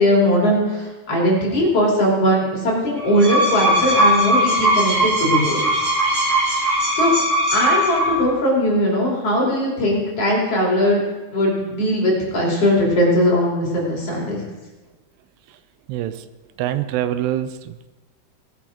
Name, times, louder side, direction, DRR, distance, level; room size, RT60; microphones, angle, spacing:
voice 1, 0.0-4.9 5.2-5.6 7.0-7.1 7.5-11.0 11.3-14.4, equal, 40° left, -3 dB, 3.5 m, -19 dB
sound 1, 3.0-8.4, equal, 40° right, 4.6 m, -19 dB
voice 2, 15.9-16.3 16.6-17.9, right 12 dB, 90° right, 12 dB, 2.8 m, -25 dB
18.0 x 8.6 x 5.0 m, 1.1 s
omnidirectional pair, 4.8 m